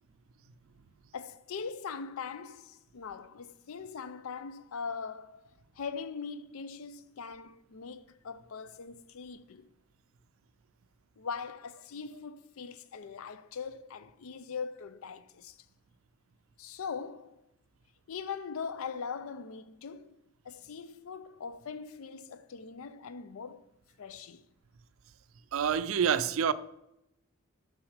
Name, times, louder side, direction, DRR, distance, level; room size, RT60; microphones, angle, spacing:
voice 1, 1.1-5.5 5.8-9.7 11.2-15.6 16.6-17.4 18.1-20.2 20.4-23.6 24.0-24.4, left 5 dB, 75° left, 0.5 m, -41 dB
voice 2, 25.5-26.5, right 7 dB, 75° right, 0.4 m, -27 dB
6.0 x 5.5 x 4.9 m
head